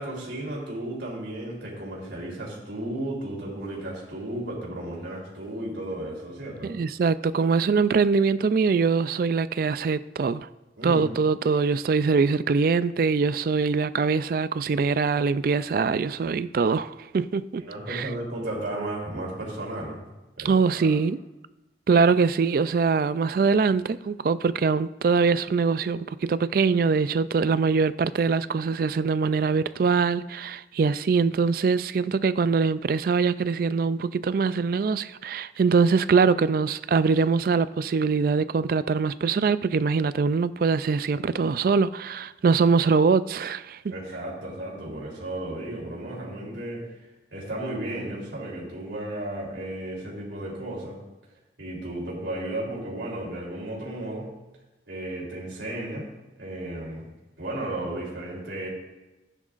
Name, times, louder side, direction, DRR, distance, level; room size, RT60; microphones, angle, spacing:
voice 1, 0.0-6.7 10.8-11.0 17.6-20.1 20.4-20.9 43.9-47.0 47.3-51.0 51.6-54.3 54.9-56.1 56.4-57.1 57.4-58.7, right 1 dB, 80° right, 3.4 m, -34 dB
voice 2, 6.8-10.5 10.8-17.6 17.9-18.0 20.4-21.2 21.9-43.8, right 5 dB, 50° right, 0.3 m, -23 dB
14.5 x 10.0 x 2.5 m
head